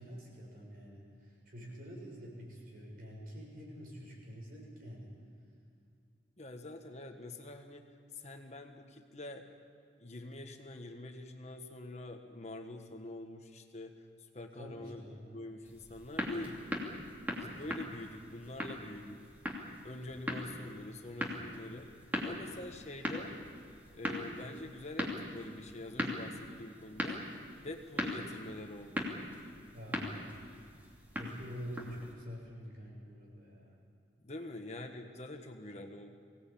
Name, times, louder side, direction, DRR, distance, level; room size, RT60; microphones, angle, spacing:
voice 1, 0.0-5.1 14.5-15.4 29.7-30.5 31.1-33.8, equal, 50° right, -2 dB, 6.9 m, -47 dB
voice 2, 6.4-7.8 8.1-9.5 10.0-15.0 15.3-16.6 17.3-19.2 19.8-21.9 22.2-23.3 23.9-27.2 27.6-29.1 34.2-36.1, left 2 dB, 40° left, 4 dB, 1.4 m, -45 dB
sound 1, 15.6-32.1, left 1 dB, 10° right, 2.8 m, -40 dB
24.0 x 17.5 x 8.6 m, 2.4 s
head